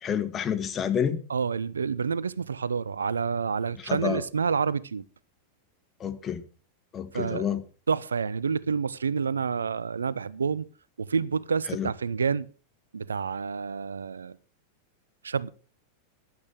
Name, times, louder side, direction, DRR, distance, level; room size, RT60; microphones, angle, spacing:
voice 1, 0.0-1.2 3.8-4.2 6.0-6.4 6.9-7.6 11.7-11.9, left 8 dB, 25° left, 1.4 m, -29 dB
voice 2, 1.3-5.0 7.1-7.5 7.9-10.6 11.0-12.5 12.9-14.3 15.2-15.5, right 5 dB, 70° right, 0.6 m, -28 dB
15.0 x 11.0 x 4.9 m
figure-of-eight pair, 90°, 0 cm